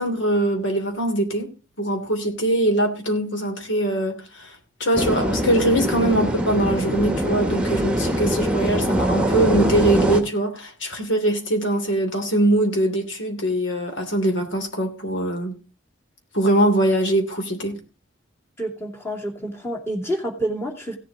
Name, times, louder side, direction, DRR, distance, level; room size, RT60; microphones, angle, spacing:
voice 1, 0.0-1.5 1.8-4.5 4.8-15.6 16.3-17.8, right 1 dB, 80° left, 3.0 m, -22 dB
sound 1, 4.9-10.2, equal, 5° right, 1.4 m, -23 dB
voice 2, 18.6-21.0, right 1 dB, 15° left, 2.6 m, -28 dB
16.5 x 7.7 x 3.8 m
head